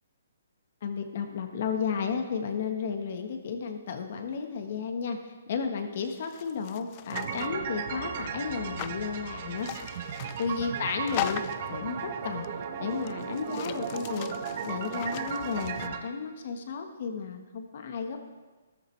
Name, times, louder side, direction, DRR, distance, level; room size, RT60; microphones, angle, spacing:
voice 1, 0.8-9.7 10.4-12.5 12.8-14.3 14.6-18.2, left 6 dB, 55° left, 5 dB, 1.5 m, -33 dB
sound 1, 6.0-7.5 8.8-9.0 9.6-10.5 11.1-11.7 12.4-12.5 12.9-15.9, left 14 dB, 35° left, 0.4 m, -39 dB
sound 2, 7.1-16.0, right 7 dB, 45° right, 1.0 m, -36 dB
13.5 x 12.5 x 3.4 m, 1.3 s
hypercardioid pair, 150°, 0 cm